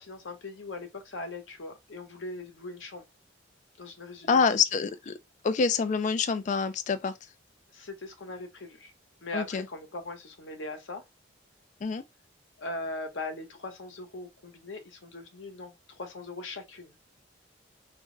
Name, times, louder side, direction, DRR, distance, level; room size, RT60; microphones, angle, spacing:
voice 1, 0.0-3.0 3.8-4.4 7.7-8.9 9.2-11.0 12.6-17.0, left 2 dB, 85° left, 0.9 m, -40 dB
voice 2, 4.3-5.1 5.4-7.1 9.3-9.7 11.8-12.0, left 5 dB, 40° left, 0.3 m, -26 dB
2.5 x 2.1 x 3.6 m
head